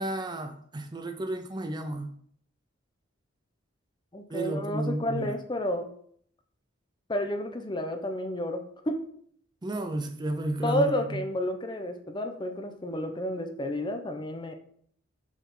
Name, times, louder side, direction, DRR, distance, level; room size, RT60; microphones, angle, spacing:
voice 1, 0.0-2.1 4.3-5.4 9.6-10.9, right 1 dB, 20° right, 6 dB, 0.5 m, -32 dB
voice 2, 4.1-5.9 7.1-9.0 10.6-14.5, left 1 dB, 20° left, 6 dB, 0.7 m, -31 dB
7.2 x 4.2 x 5.4 m, 0.62 s
head